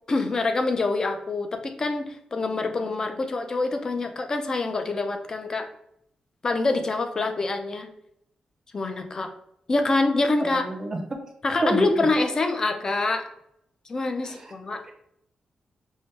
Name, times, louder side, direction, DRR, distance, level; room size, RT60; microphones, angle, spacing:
voice 1, 0.1-5.7 6.4-7.9 8.7-9.3 9.7-10.6 11.4-13.2 13.9-14.8, left 3 dB, 30° left, 6 dB, 0.4 m, -25 dB
voice 2, 10.4-11.0 11.6-12.0 14.2-14.5, right 2 dB, 25° right, 3 dB, 0.6 m, -28 dB
5.4 x 2.1 x 3.2 m, 0.73 s
wide cardioid pair, 170°, 2 cm